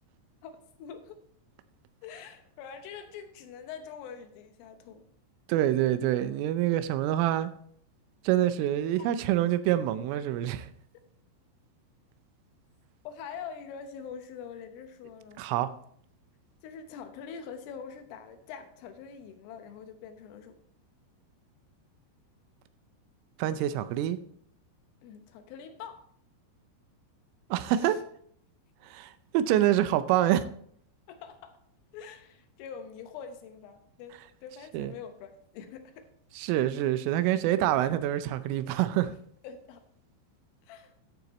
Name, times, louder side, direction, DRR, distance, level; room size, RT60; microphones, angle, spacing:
voice 1, 0.4-1.2 2.0-5.0 9.0-9.1 13.1-15.4 16.6-20.6 25.0-26.0 27.8-28.0 31.1-31.6 31.9-36.1 39.0-39.2 39.4-39.8 40.6-40.9, left 7 dB, 85° left, 3.6 m, -44 dB
voice 2, 5.5-7.5 8.2-10.7 15.4-15.7 23.4-24.2 27.5-28.0 28.8-30.4 34.7-34.9 36.4-39.1, right 12 dB, 85° right, 3.2 m, -26 dB
13.5 x 8.0 x 3.1 m
omnidirectional pair, 5.7 m